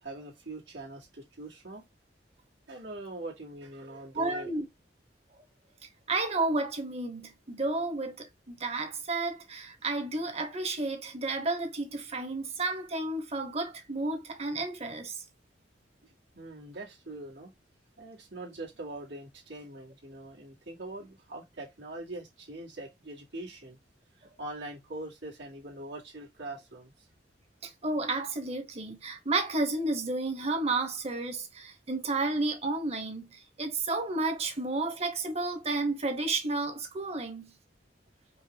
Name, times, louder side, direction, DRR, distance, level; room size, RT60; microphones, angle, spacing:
voice 1, 0.0-1.9 2.7-4.5 16.0-17.6 18.0-23.8 24.1-27.1, right 2 dB, 85° right, 2.1 m, -43 dB
voice 2, 4.1-4.7 6.1-15.2 27.6-37.6, right 2 dB, 35° right, 1.0 m, -32 dB
5.1 x 2.4 x 3.8 m
head